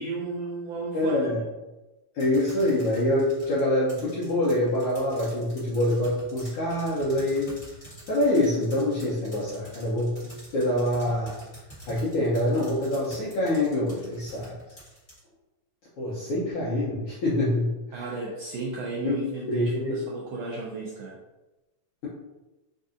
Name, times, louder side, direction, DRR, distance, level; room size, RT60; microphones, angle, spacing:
voice 1, 0.0-1.3 17.9-21.2, right 3 dB, 85° right, -4 dB, 1.4 m, -34 dB
voice 2, 0.9-1.4 2.1-7.5 8.1-10.1 10.5-11.4 11.9-14.5 16.0-18.1 19.0-19.2 19.5-20.0, left 1 dB, 75° left, -7 dB, 1.3 m, -25 dB
sound 1, 2.2-15.2, right 1 dB, 60° left, 0.3 m, -47 dB
4.6 x 2.6 x 2.5 m, 1.1 s
omnidirectional pair, 3.3 m